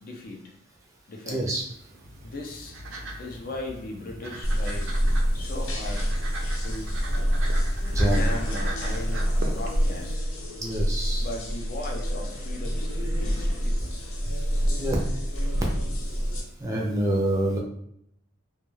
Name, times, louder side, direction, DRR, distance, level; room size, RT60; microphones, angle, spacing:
voice 1, 0.0-0.5 1.1-1.5 2.2-2.8 3.2-4.9 5.3-6.1 6.6-6.9 8.0-10.3 11.2-14.0, left 2 dB, 45° left, 1 dB, 0.5 m, -38 dB
voice 2, 1.3-1.6 7.9-8.2 10.6-11.3 14.8-15.0 16.6-17.6, right 1 dB, 15° right, -2 dB, 0.4 m, -26 dB
sound 1, 1.7-10.1, right 1 dB, 70° right, 0.5 m, -39 dB
sound 2, 4.4-16.4, equal, 90° left, 0.6 m, -27 dB
2.3 x 2.2 x 3.1 m, 0.74 s
head